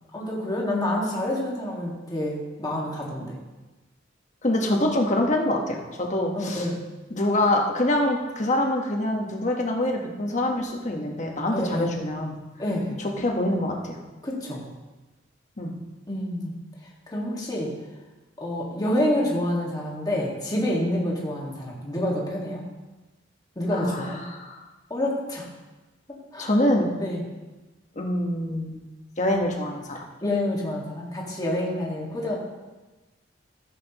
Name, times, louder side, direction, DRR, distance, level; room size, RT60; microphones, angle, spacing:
voice 1, 0.1-3.4 6.3-6.8 11.5-11.9 12.6-13.0 14.2-14.6 16.1-16.6 17.1-17.7 18.4-22.7 23.6-24.2 24.9-25.5 26.3-26.5 27.0-27.2 30.2-32.4, left 1 dB, 20° left, -4 dB, 1.9 m, -28 dB
voice 2, 4.4-6.7 7.1-12.4 13.0-14.0 15.6-15.8 23.7-24.6 26.4-26.9 27.9-28.8 29.2-30.0, left 1 dB, 40° left, 1 dB, 1.3 m, -25 dB
14.5 x 7.7 x 3.0 m, 1.2 s
head